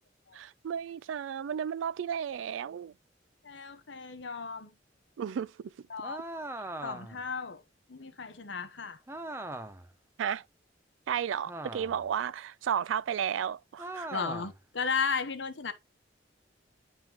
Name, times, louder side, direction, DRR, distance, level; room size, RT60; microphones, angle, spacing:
voice 1, 0.3-2.9 5.2-5.5 10.2-10.4 11.1-14.1, right 8 dB, 80° right, 0.3 m, -33 dB
voice 2, 3.4-4.7 5.9-6.2 6.8-7.6 7.9-9.0 14.1-15.7, left 5 dB, 70° left, 1.0 m, -35 dB
sound 1, 6.0-7.3 9.1-9.9 11.5-12.1 13.8-14.6, right 2 dB, 15° right, 0.5 m, -40 dB
10.5 x 3.6 x 2.9 m
head